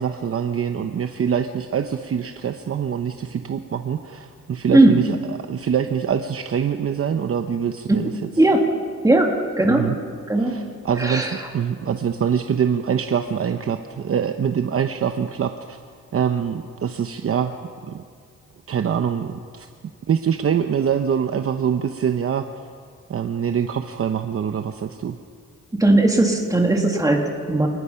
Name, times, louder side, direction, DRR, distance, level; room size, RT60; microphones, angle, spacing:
voice 1, 0.0-8.3 9.7-10.0 10.4-15.8 16.1-17.5 17.9-18.0 18.7-19.7 20.1-22.5 23.1-25.2, right 7 dB, 45° right, 7 dB, 0.9 m, -24 dB
voice 2, 9.0-9.9 10.3-10.6 11.0-11.3 25.8-27.7, right 2 dB, 10° right, 1 dB, 2.6 m, -17 dB
28.0 x 19.5 x 5.8 m, 2.1 s
wide cardioid pair, 155°, 32 cm